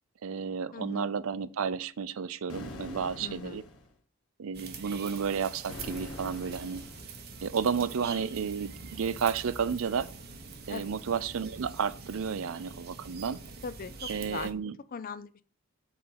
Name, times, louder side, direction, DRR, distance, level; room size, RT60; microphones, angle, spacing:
voice 1, 0.2-3.6 4.4-6.8 7.4-10.1 10.7-13.4 14.1-14.8, right 6 dB, 70° right, 0.4 m, -32 dB
voice 2, 0.7-1.0 3.2-3.6 10.7-10.8 13.6-14.5 14.9-15.4, left 5 dB, 40° left, 0.4 m, -39 dB
sound 1, 2.5-3.9 5.7-7.1, left 2 dB, 75° left, 1.3 m, -44 dB
sound 2, 4.5-14.5, right 4 dB, 45° right, 1.1 m, -44 dB
6.5 x 4.1 x 5.6 m
head